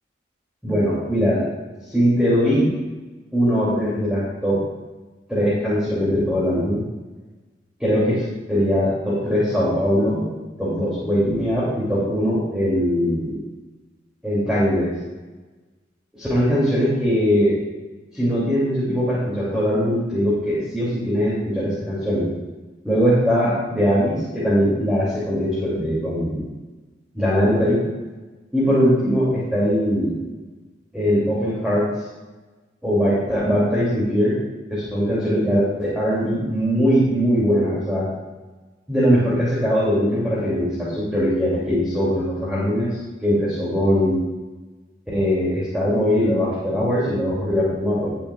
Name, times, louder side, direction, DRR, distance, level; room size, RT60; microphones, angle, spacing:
voice 1, 0.6-1.4 1.9-2.7 3.3-4.6 5.3-6.8 7.8-10.2 10.6-13.4 14.2-14.9 16.2-17.6 18.1-22.3 22.8-26.5 27.1-27.8 28.5-30.2 30.9-31.9 32.8-34.4 34.7-38.1 38.9-42.9 43.2-44.2 45.1-48.1, equal, 5° right, -9 dB, 3.0 m, -21 dB
18.0 x 8.7 x 2.5 m, 1.2 s
head